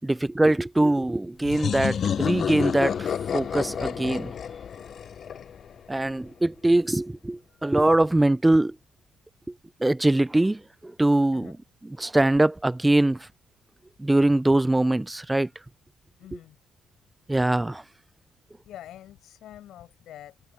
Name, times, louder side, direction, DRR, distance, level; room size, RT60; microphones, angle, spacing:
voice 1, 0.0-4.3 5.9-8.7 9.8-11.5 12.0-13.2 14.0-15.5 17.3-17.8, right 1 dB, 10° right, 0.4 m, -22 dB
sound 1, 1.4-6.0, left 8 dB, 55° left, 1.0 m, -29 dB
voice 2, 5.2-5.5 11.3-11.6 16.2-16.6 18.6-20.5, left 12 dB, 80° left, 7.5 m, -46 dB
cardioid pair, 90°, 0 cm